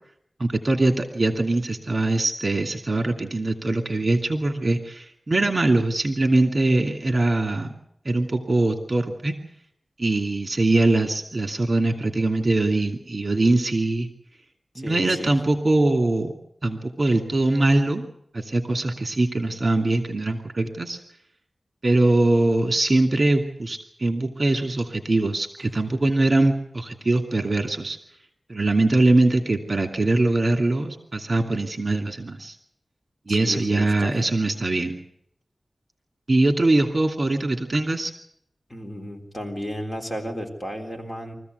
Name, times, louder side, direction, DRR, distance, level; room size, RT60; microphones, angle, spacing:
voice 1, 0.4-7.7 8.0-9.3 10.0-14.1 14.8-16.3 16.6-18.1 18.3-21.0 21.8-28.0 28.5-32.5 33.3-35.0 36.3-38.1, right 2 dB, 45° right, 4 dB, 2.6 m, -22 dB
voice 2, 14.7-15.3 33.3-34.1 38.7-41.3, equal, 20° left, 2 dB, 3.7 m, -33 dB
24.0 x 15.0 x 8.1 m, 0.73 s
wide cardioid pair, 80°, 0 cm